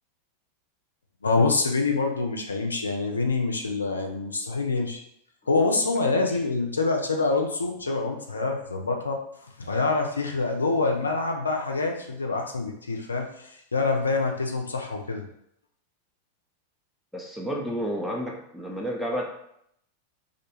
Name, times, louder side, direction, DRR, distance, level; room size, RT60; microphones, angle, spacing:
voice 1, 1.2-5.0 5.5-9.2 9.6-15.3, left 3 dB, 75° left, 2 dB, 0.4 m, -26 dB
voice 2, 17.1-19.3, equal, ahead, -2 dB, 0.4 m, -31 dB
2.4 x 2.2 x 2.9 m, 0.73 s
figure-of-eight pair, 90°, 0 cm